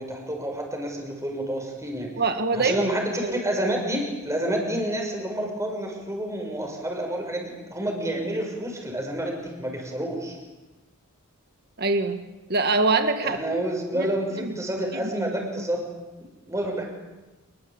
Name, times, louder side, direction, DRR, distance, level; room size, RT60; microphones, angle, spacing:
voice 1, 0.0-2.1 2.5-10.4 13.2-16.9, right 1 dB, 15° right, 2 dB, 6.6 m, -29 dB
voice 2, 2.2-2.8 3.2-3.4 11.8-12.2 12.5-13.4 13.9-14.5 14.9-15.6, right 3 dB, 50° right, 7 dB, 1.8 m, -25 dB
28.0 x 22.5 x 8.7 m, 1.1 s
head